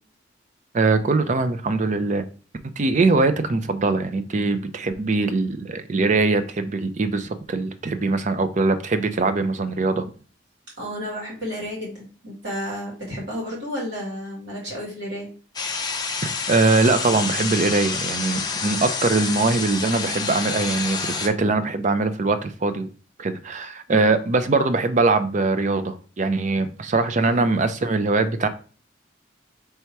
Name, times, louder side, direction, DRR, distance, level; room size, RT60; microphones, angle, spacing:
voice 1, 0.7-2.2 2.8-10.0 16.2-22.9 23.2-28.5, right 3 dB, 40° right, 10 dB, 0.4 m, -22 dB
voice 2, 10.8-15.3 23.9-24.1 27.1-27.4, equal, 75° right, -4 dB, 2.3 m, -32 dB
sound 1, 15.5-21.3, left 5 dB, 20° left, 0.5 m, -28 dB
3.4 x 2.9 x 4.6 m, 0.39 s
head